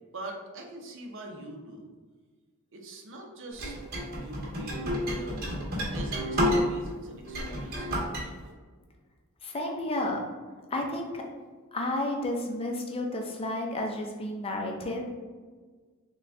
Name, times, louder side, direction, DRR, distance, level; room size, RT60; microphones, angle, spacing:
voice 1, 0.1-1.9 2.7-5.5 5.7-8.5, right 1 dB, 60° right, 1 dB, 0.6 m, -44 dB
sound 1, 3.6-6.9 7.2-8.2, equal, 45° right, 1.3 m, -30 dB
voice 2, 9.4-10.2 10.7-11.2 11.7-15.1, left 1 dB, 25° left, 1 dB, 0.5 m, -31 dB
3.9 x 2.3 x 3.3 m, 1.4 s
head